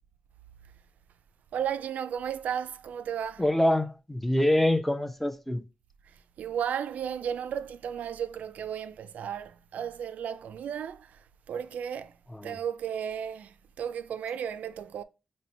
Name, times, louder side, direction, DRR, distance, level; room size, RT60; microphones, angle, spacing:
voice 1, 1.5-3.4 6.0-15.0, right 8 dB, 80° right, 0.3 m, -34 dB
voice 2, 3.4-5.6 12.3-12.6, left 1 dB, 5° left, 0.6 m, -25 dB
4.2 x 2.1 x 4.1 m
cardioid pair, 55°, 3 cm